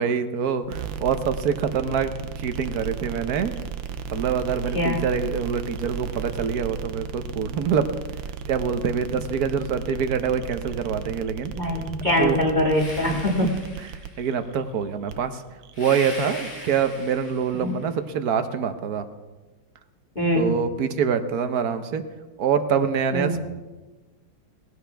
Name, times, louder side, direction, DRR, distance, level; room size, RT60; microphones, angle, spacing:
voice 1, 0.0-2.1 2.4-3.5 4.1-7.9 8.5-11.5 12.2-12.4 13.1-13.5 14.2-15.3 15.8-19.1 20.3-22.0 22.4-23.4, right 7 dB, 60° right, 9 dB, 1.3 m, -25 dB
sound 1, 0.6-17.7, right 7 dB, 90° right, 1.5 m, -36 dB
voice 2, 11.5-13.5 17.6-17.7 20.2-20.5 23.1-23.4, left 1 dB, 25° left, -4 dB, 2.1 m, -23 dB
sound 2, 12.7-14.4 15.7-17.8, left 1 dB, 75° left, 5.1 m, -39 dB
19.0 x 16.0 x 3.4 m, 1.2 s
omnidirectional pair, 2.0 m